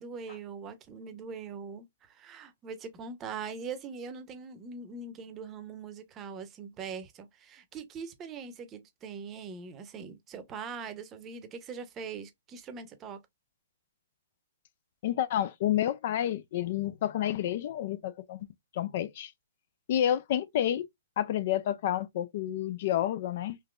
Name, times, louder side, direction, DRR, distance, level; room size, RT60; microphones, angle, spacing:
voice 1, 0.0-13.2, right 5 dB, 25° right, 0.8 m, -42 dB
voice 2, 15.0-18.5 18.7-19.3 19.9-20.8 21.2-23.6, left 11 dB, 50° left, 0.4 m, -29 dB
3.7 x 2.8 x 2.3 m
hypercardioid pair, 130°, 0 cm